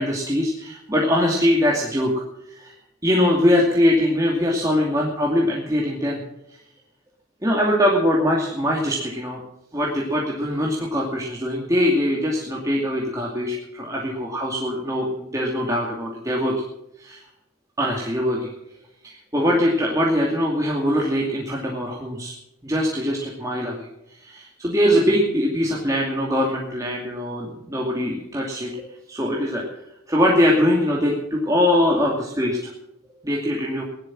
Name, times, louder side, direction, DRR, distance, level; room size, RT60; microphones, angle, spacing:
voice 1, 0.0-2.1 2.5-2.7 3.0-6.2 7.4-9.4 9.7-16.5 17.0-17.2 17.8-18.5 19.0-22.3 22.6-23.9 24.2-29.6 30.1-32.7 33.2-33.8, left 1 dB, 15° right, -3 dB, 2.5 m, -22 dB
17.5 x 12.0 x 6.1 m, 0.85 s
head